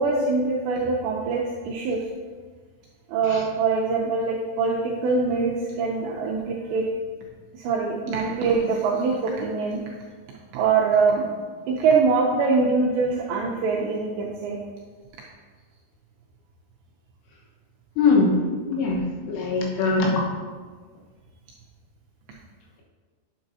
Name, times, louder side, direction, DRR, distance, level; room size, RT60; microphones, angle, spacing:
voice 1, 0.0-2.0 3.1-6.9 7.5-9.8 10.5-11.3 11.7-14.6, right 4 dB, 80° right, -3 dB, 2.5 m, -23 dB
voice 2, 18.0-18.4 18.7-20.2, left 3 dB, 80° left, -2 dB, 3.7 m, -22 dB
8.8 x 7.5 x 2.7 m, 1.5 s
omnidirectional pair, 5.7 m